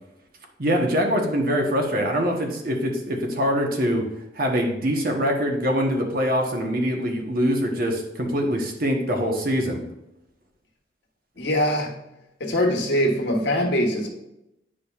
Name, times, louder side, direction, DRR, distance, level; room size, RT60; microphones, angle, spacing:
voice 1, 0.6-4.1 4.3-9.8, equal, 55° right, 1 dB, 1.1 m, -23 dB
voice 2, 11.4-12.0 12.4-14.1, equal, 80° left, 0 dB, 1.3 m, -22 dB
10.0 x 5.0 x 2.4 m, 0.88 s
head